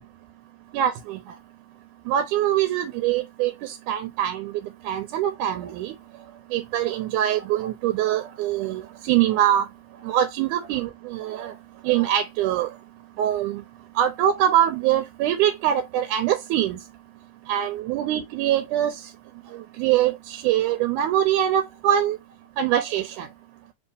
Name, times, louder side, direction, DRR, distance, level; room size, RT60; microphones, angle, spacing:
voice 1, 0.7-1.2 2.1-4.5 4.8-6.0 6.5-9.7 10.0-11.5 11.8-12.7 13.2-13.6 14.0-16.8 17.5-19.0 19.5-22.2 22.6-23.3, right 11 dB, 85° right, 2.1 m, -23 dB
4.6 x 2.8 x 3.4 m
omnidirectional pair, 3.6 m